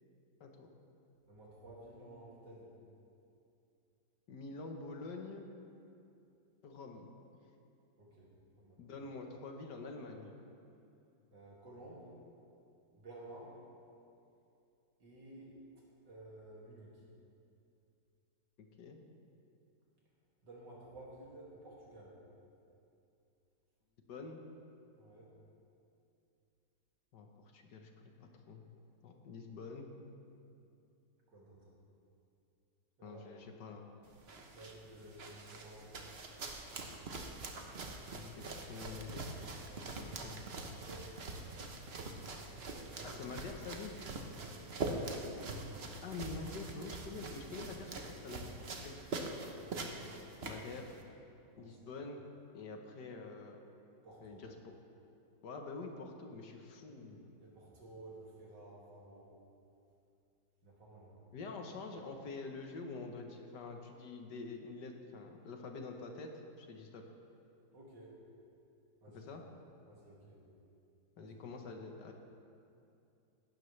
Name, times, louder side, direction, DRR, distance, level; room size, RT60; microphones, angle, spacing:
voice 1, 1.3-2.7 8.0-8.3 8.6-8.8 11.3-12.1 12.9-13.5 15.0-15.5 16.1-17.0 20.4-22.2 25.0-25.3 31.3-31.7 33.0-33.3 34.4-36.0 37.8-38.0 39.7-40.0 40.7-41.1 41.9-42.3 42.6-43.2 44.3-45.6 49.5-50.5 51.6-51.7 54.0-54.4 56.9-59.4 60.6-61.2 67.7-68.2 69.0-69.3 69.9-70.4 71.2-71.4, right 1 dB, 75° right, -4 dB, 3.0 m, -54 dB
voice 2, 4.3-5.5 6.6-7.1 8.8-10.4 18.8-19.0 24.1-24.4 27.1-27.3 27.5-28.6 29.0-29.9 33.0-33.9 38.1-39.3 39.8-40.4 43.0-44.0 46.0-49.0 50.4-51.0 51.6-52.2 52.5-53.6 54.2-54.7 55.4-57.2 61.3-67.0 69.1-69.4 71.2-72.1, left 3 dB, 70° left, 3 dB, 1.7 m, -46 dB
sound 1, 34.0-51.0, right 3 dB, 45° right, 1.0 m, -44 dB
16.5 x 12.0 x 3.3 m, 2.6 s
omnidirectional pair, 1.9 m